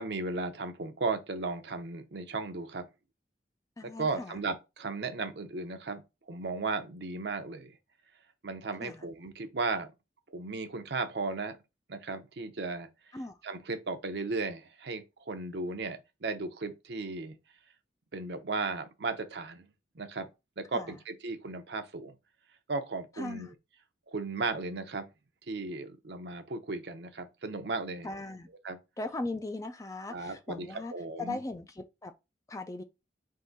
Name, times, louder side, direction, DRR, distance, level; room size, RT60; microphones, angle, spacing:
voice 1, 0.0-2.9 3.8-6.0 6.3-7.8 8.4-9.9 10.3-11.6 11.9-12.9 13.4-17.4 18.1-19.6 19.9-20.3 20.6-22.1 22.7-23.5 24.1-25.1 25.5-28.1 28.6-28.8 30.1-31.4, right 3 dB, 65° right, 0.7 m, -35 dB
voice 2, 3.8-4.4 8.8-9.1 13.1-13.4 20.7-20.9 23.2-23.6 28.0-28.5 29.0-30.9 31.2-32.1 32.5-32.8, left 2 dB, 15° left, 0.3 m, -38 dB
3.6 x 2.6 x 3.9 m
head